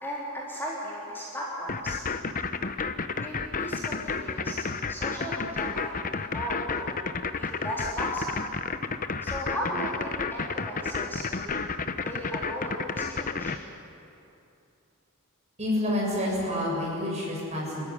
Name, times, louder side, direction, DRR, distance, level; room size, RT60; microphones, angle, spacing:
voice 1, 0.0-2.0 3.2-5.9 6.3-6.9 7.3-8.3 9.2-11.5 12.0-13.5, equal, 10° left, -6 dB, 3.6 m, -36 dB
sound 1, 1.7-13.6, left 4 dB, 40° left, 0.9 m, -30 dB
voice 2, 15.6-17.9, left 1 dB, 30° right, -3 dB, 7.5 m, -28 dB
27.0 x 14.0 x 10.0 m, 2.7 s
head